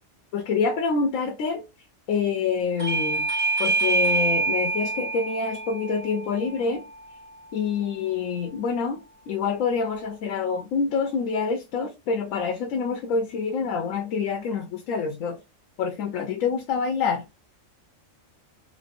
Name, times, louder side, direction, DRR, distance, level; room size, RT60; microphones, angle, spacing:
voice 1, 0.3-1.6 2.1-3.3 3.6-6.8 7.5-15.4 15.8-17.2, left 5 dB, 90° left, 1.0 m, -26 dB
Bell / Doorbell, 2.8-8.0, right 3 dB, 35° right, 0.9 m, -27 dB
3.1 x 2.9 x 2.5 m
omnidirectional pair, 1.3 m